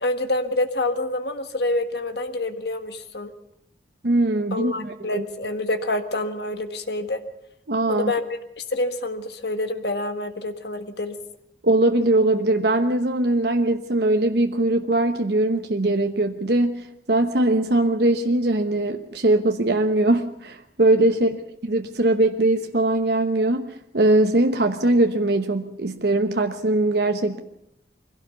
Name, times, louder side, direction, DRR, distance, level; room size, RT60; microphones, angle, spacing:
voice 1, 0.0-3.3 4.5-7.2 7.9-8.2 8.6-11.2 21.1-21.3, left 2 dB, 65° left, 8 dB, 1.6 m, -27 dB
voice 2, 4.0-5.3 7.7-8.1 11.6-21.4 21.6-27.4, right 2 dB, 65° right, 5 dB, 1.1 m, -21 dB
22.5 x 16.5 x 6.9 m, 0.79 s
head